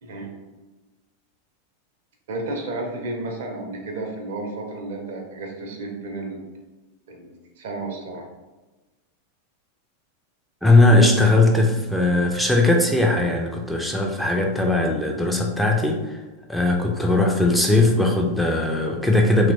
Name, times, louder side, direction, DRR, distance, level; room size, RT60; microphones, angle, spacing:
voice 1, 0.0-0.3 2.3-6.5 7.1-8.3, right 2 dB, 55° right, 2 dB, 0.5 m, -32 dB
voice 2, 10.6-16.2 16.5-19.5, left 2 dB, ahead, 1 dB, 0.3 m, -19 dB
2.7 x 2.1 x 2.6 m, 1.2 s
figure-of-eight pair, 90°, 0 cm